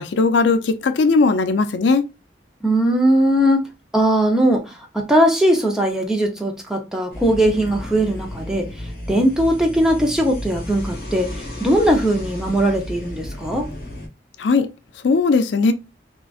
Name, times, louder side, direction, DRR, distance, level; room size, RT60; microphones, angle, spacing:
voice 1, 0.0-2.0 14.4-14.7 15.0-15.7, left 4 dB, 85° left, 0.4 m, -18 dB
voice 2, 2.6-3.7 3.9-8.7 9.1-13.7, right 1 dB, 5° right, 0.6 m, -19 dB
sound 1, 7.1-14.1, left 1 dB, 55° left, 1.4 m, -33 dB
3.7 x 2.5 x 2.3 m
head